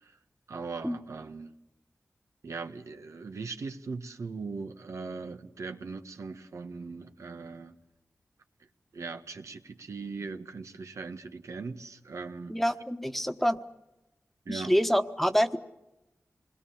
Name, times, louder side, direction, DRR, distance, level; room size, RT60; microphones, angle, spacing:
voice 1, 0.5-1.5 2.4-7.7 8.9-12.6 14.4-14.7, right 4 dB, 85° right, 1.4 m, -39 dB
voice 2, 12.5-13.6 14.5-15.6, equal, 5° left, 1.3 m, -26 dB
27.0 x 21.5 x 7.2 m
wide cardioid pair, 75°, 5 cm